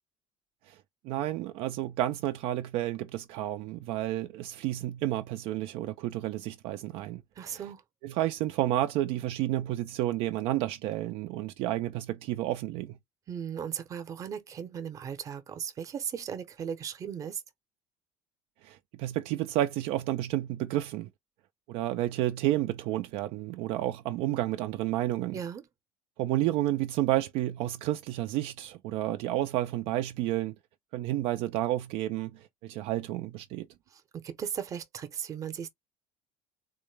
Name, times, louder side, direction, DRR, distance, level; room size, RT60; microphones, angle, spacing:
voice 1, 1.0-7.2 7.5-7.6 8.0-13.0 18.6-21.1 21.7-25.4 26.2-30.6 30.9-33.7, right 14 dB, 65° right, 0.4 m, -31 dB
voice 2, 7.4-7.8 13.3-17.4 25.3-25.7 33.9-35.7, right 8 dB, 30° right, 0.7 m, -37 dB
3.8 x 2.1 x 3.2 m
cardioid pair, 150°, 11 cm